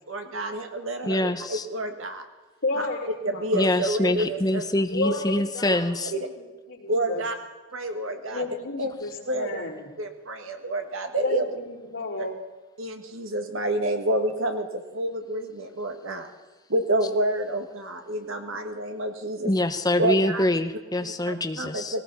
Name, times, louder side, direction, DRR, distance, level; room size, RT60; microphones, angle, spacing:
voice 1, 0.1-2.2 2.7-2.9 3.2-4.6 5.0-5.2 5.7-5.8 6.1-6.3 6.9-7.4 7.7-8.4 8.8-8.9 9.3-9.6 10.0-11.4 12.2-12.3 12.8-16.3 16.7-19.5 20.0-20.6 21.3-22.0, right 1 dB, 70° right, 5 dB, 1.7 m, -28 dB
voice 2, 1.0-1.7 3.5-6.1 19.4-21.9, left 1 dB, 20° left, 9 dB, 0.8 m, -25 dB
voice 3, 2.6-3.4 4.9-5.9 6.7-7.2 8.3-9.7 11.2-12.3, left 2 dB, 85° left, -7 dB, 4.5 m, -31 dB
19.0 x 18.0 x 4.1 m, 1.3 s
head